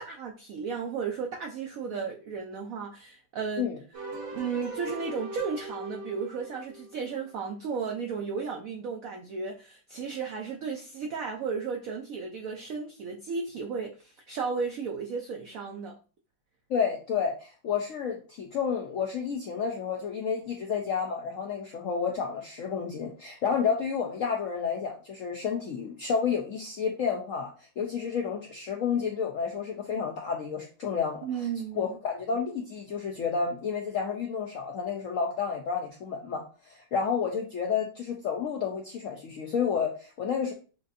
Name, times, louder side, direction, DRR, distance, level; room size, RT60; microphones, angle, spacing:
voice 1, 0.0-3.7 4.3-15.9 31.2-32.0, right 5 dB, 80° right, 0.7 m, -34 dB
sound 1, 3.9-7.2, right 2 dB, 45° right, 1.1 m, -40 dB
voice 2, 16.7-31.3 31.8-36.4 36.7-40.5, left 6 dB, 75° left, 0.7 m, -30 dB
6.1 x 2.6 x 2.5 m
omnidirectional pair, 2.1 m